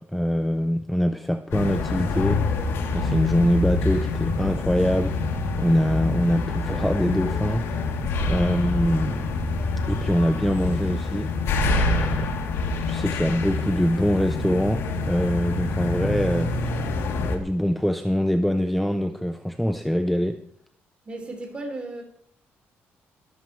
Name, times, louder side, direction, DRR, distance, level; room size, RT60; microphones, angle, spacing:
voice 1, 0.0-2.4 2.9-7.8 8.3-9.3 9.9-12.3 12.9-16.7 17.1-20.4, equal, ahead, 0.6 m, -24 dB
sound 1, 1.5-17.4, left 3 dB, 80° left, 3.1 m, -26 dB
voice 2, 21.0-22.0, right 2 dB, 25° right, 4.6 m, -34 dB
21.0 x 13.5 x 3.3 m
cardioid pair, 145°, 4 cm